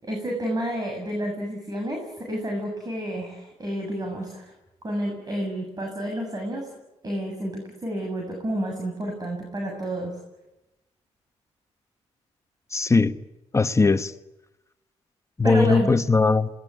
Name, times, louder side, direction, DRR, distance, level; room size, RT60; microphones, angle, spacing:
voice 1, 0.0-4.5 4.8-6.7 7.0-10.2 15.4-15.9, right 1 dB, 30° right, 2 dB, 7.5 m, -30 dB
voice 2, 12.7-13.1 13.5-14.1 15.4-16.5, left 3 dB, 25° left, 11 dB, 1.4 m, -19 dB
27.0 x 20.5 x 9.9 m, 0.97 s
cardioid pair, 75°, 12 cm